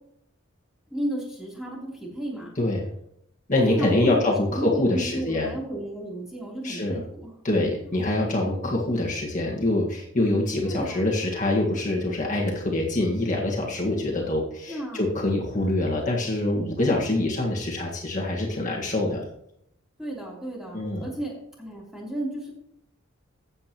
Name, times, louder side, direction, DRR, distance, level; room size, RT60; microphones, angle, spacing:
voice 1, 0.9-2.5 3.6-4.2 4.5-7.3 10.6-11.0 14.7-15.1 16.9-17.0 20.0-22.5, right 1 dB, ahead, -4 dB, 3.3 m, -33 dB
voice 2, 2.5-2.9 3.5-5.5 6.6-7.0 7.4-19.3 20.7-21.1, left 2 dB, 40° left, -2 dB, 1.7 m, -25 dB
14.5 x 8.5 x 3.0 m, 0.73 s
head